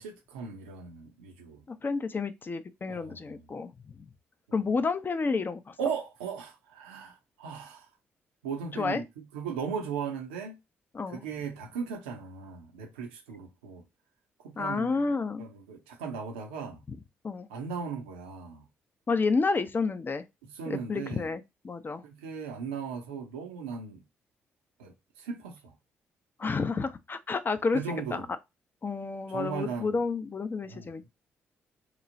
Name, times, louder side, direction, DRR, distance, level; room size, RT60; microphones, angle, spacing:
voice 1, 0.0-1.6 2.9-3.5 4.5-4.6 5.8-7.9 8.4-9.0 9.3-10.6 11.1-13.8 14.4-14.9 15.4-16.8 17.5-18.6 20.4-21.3 22.0-24.0 24.8-25.7 27.7-28.3 29.3-30.0 30.7-31.1, right 6 dB, 90° right, 0.5 m, -37 dB
voice 2, 1.7-3.7 4.0-4.1 4.5-5.8 8.7-9.0 10.9-11.2 14.6-15.4 16.9-17.0 17.2-17.5 19.1-20.2 20.7-22.0 26.4-27.8 28.1-28.2 28.8-31.1, left 4 dB, 35° left, 0.5 m, -30 dB
2.9 x 2.0 x 2.5 m
hypercardioid pair, 45°, 6 cm